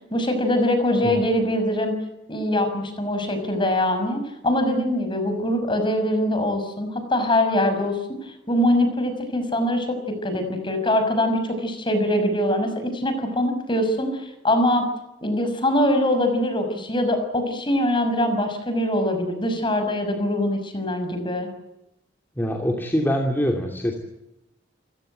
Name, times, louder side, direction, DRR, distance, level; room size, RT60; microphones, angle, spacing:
voice 1, 0.1-2.0 2.3-14.9 15.2-21.5, left 1 dB, 30° left, 8 dB, 6.1 m, -23 dB
voice 2, 22.4-24.0, equal, 10° left, 1 dB, 2.9 m, -24 dB
29.0 x 17.0 x 9.2 m, 0.92 s
head